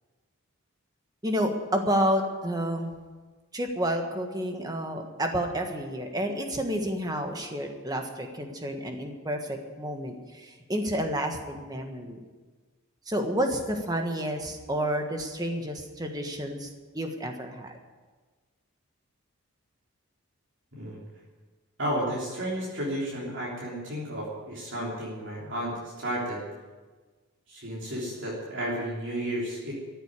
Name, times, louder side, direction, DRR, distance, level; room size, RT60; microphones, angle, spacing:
voice 1, 1.2-2.9 3.5-12.2 13.1-16.7 16.9-17.8, equal, 15° right, 4 dB, 1.5 m, -30 dB
voice 2, 21.8-26.4 27.5-29.7, equal, 55° right, -6 dB, 3.4 m, -32 dB
14.0 x 8.2 x 9.8 m, 1.4 s
head